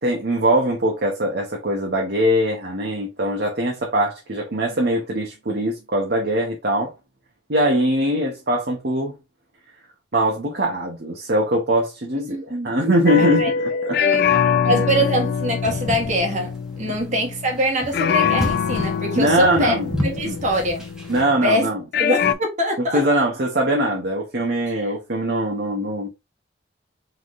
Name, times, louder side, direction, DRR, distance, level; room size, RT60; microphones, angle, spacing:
voice 1, 0.0-6.9 7.5-9.1 10.1-14.2 14.7-14.8 16.9-17.0 19.1-19.9 20.2-20.4 21.1-21.8 22.9-26.1, right 1 dB, 60° right, 1.0 m, -22 dB
voice 2, 12.3-12.7 13.2-13.5 14.0-14.2 14.6-19.8 20.0-20.8 21.4-21.7 22.0-23.0 24.7-24.9, equal, 40° right, 1.4 m, -23 dB
sound 1, 13.1-17.7 17.9-21.5 21.9-22.3, left 7 dB, 55° left, 0.4 m, -23 dB
sound 2, 14.9-21.2, left 1 dB, 5° right, 1.0 m, -31 dB
3.9 x 3.6 x 3.1 m
head